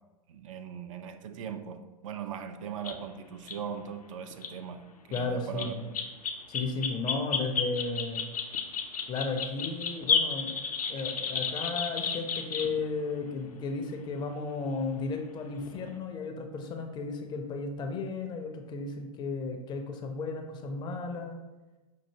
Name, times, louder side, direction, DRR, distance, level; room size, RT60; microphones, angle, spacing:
voice 1, 0.3-6.0, right 8 dB, 60° right, 0.4 m, -40 dB
sound 1, 2.8-3.0 3.5-3.6 4.3-4.5 5.1-5.2 5.6-12.8 14.2-14.3 15.6-16.0, left 6 dB, 75° left, 0.5 m, -32 dB
voice 2, 5.1-5.9 6.5-8.3 9.1-10.6 10.9-21.4, left 3 dB, 25° left, 0.4 m, -34 dB
5.4 x 2.6 x 2.7 m
figure-of-eight pair, 95°, 19 cm